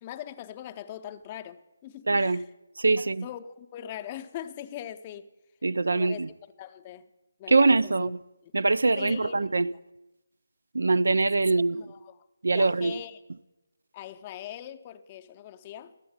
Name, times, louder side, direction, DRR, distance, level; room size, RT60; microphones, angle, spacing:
voice 1, 0.0-2.4 3.0-5.3 5.9-6.2 6.6-7.1 7.4-8.1 8.4-8.5 8.9-9.6 11.7-13.2 13.9-15.9, left 11 dB, 25° left, 0.5 m, -41 dB
voice 2, 2.1-2.4 2.8-3.3 5.6-6.3 7.5-8.2 8.5-9.7 10.7-11.8 12.4-12.9, right 3 dB, 80° right, 0.3 m, -23 dB
12.0 x 7.9 x 7.9 m
figure-of-eight pair, 165°, 0 cm